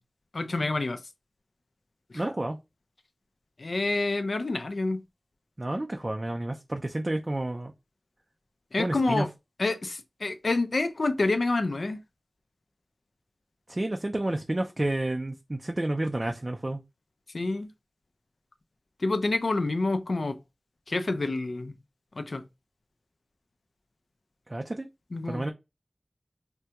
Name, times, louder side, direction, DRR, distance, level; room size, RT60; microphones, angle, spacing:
voice 1, 0.3-1.0 3.6-5.0 8.7-9.3 9.6-12.0 17.3-17.7 19.0-20.4 20.9-21.7 22.2-22.4 25.1-25.4, left 2 dB, 85° left, 0.3 m, -28 dB
voice 2, 2.1-2.6 5.6-7.7 8.8-9.3 13.7-16.8 24.5-24.9 25.3-25.5, right 1 dB, 40° right, 0.3 m, -30 dB
3.4 x 2.2 x 2.8 m
wide cardioid pair, 60°, 0 cm